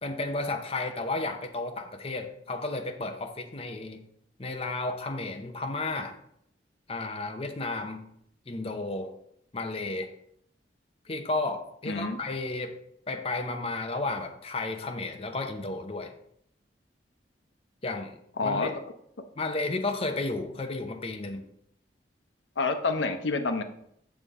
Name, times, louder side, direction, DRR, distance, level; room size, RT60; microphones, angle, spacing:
voice 1, 0.0-4.1 4.4-6.2 6.9-8.1 8.5-9.2 9.5-10.1 11.0-12.8 13.1-16.1 17.8-18.1 18.4-18.8 19.4-21.4, left 2 dB, 35° left, 5 dB, 0.7 m, -33 dB
voice 2, 11.9-12.2 18.4-18.7 22.6-23.6, left 3 dB, 90° left, 7 dB, 0.8 m, -28 dB
7.4 x 6.8 x 3.6 m, 0.71 s
head